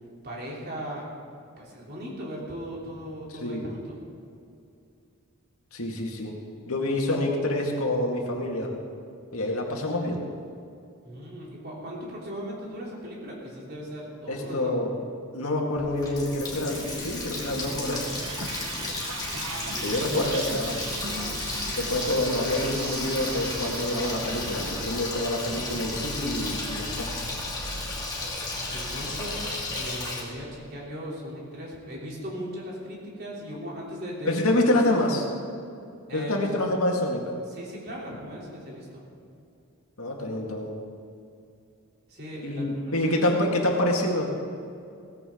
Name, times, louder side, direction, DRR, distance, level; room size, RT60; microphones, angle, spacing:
voice 1, 0.2-1.1 1.6-4.0 11.0-14.7 19.5-20.1 28.7-34.6 36.1-36.5 37.5-39.0 42.1-43.3, equal, 45° right, -4 dB, 3.5 m, -38 dB
voice 2, 3.4-3.7 5.7-6.4 6.7-8.7 9.3-10.2 14.3-14.9 15.3-18.0 19.8-20.8 21.8-27.1 34.2-35.3 36.1-37.3 40.0-40.7 42.4-44.3, left 1 dB, 75° left, 0 dB, 2.1 m, -27 dB
Water tap faucet, 15.8-30.2, left 2 dB, 20° left, 2.5 m, -34 dB
sound 1, 16.6-29.8, right 3 dB, 65° right, 1.4 m, -39 dB
17.0 x 15.0 x 3.9 m, 2.5 s
head